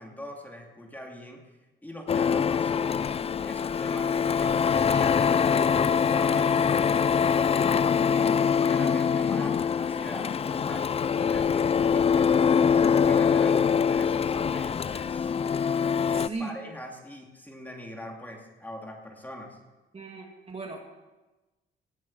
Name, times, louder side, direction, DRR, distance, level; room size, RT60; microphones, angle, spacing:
voice 1, 0.0-1.4 1.8-3.1 3.4-6.7 7.3-12.5 12.9-15.4 16.0-19.6, left 1 dB, 10° left, 1 dB, 2.5 m, -42 dB
Printer, 2.1-16.3, left 7 dB, 30° left, 0.4 m, -24 dB
voice 2, 16.1-16.5 19.9-20.8, right 3 dB, 30° right, 2 dB, 2.5 m, -37 dB
18.0 x 7.5 x 7.4 m, 1.1 s
cardioid pair, 90°, 20 cm